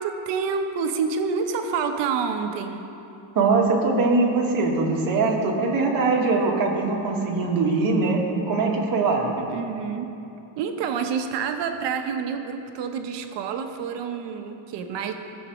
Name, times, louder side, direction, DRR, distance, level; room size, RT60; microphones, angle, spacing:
voice 1, 0.0-2.9 9.5-10.1 10.6-15.1, right 6 dB, 70° right, 6 dB, 0.9 m, -28 dB
voice 2, 3.3-8.2 8.5-9.3, right 3 dB, 50° right, -1 dB, 1.6 m, -22 dB
16.5 x 7.4 x 3.0 m, 2.8 s
cardioid pair, 150°, 44 cm